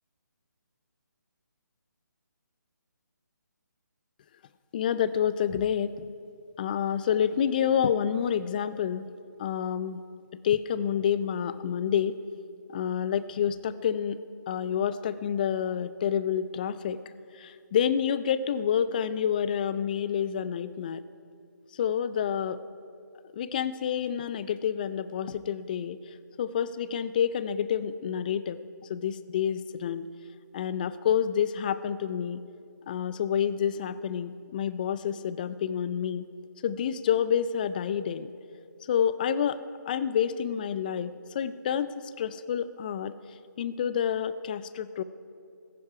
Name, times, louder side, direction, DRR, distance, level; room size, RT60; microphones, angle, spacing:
voice 1, 4.7-6.1 6.6-9.1 9.4-10.0 10.4-12.2 12.7-14.2 14.5-17.0 17.3-21.0 21.7-22.6 23.3-26.0 26.4-28.6 28.9-30.1 30.5-32.4 32.9-36.3 36.6-38.3 38.9-43.1 43.6-45.0, left 8 dB, 25° left, 15 dB, 0.4 m, -28 dB
15.5 x 15.5 x 4.8 m, 2.4 s
figure-of-eight pair, 150°, 10 cm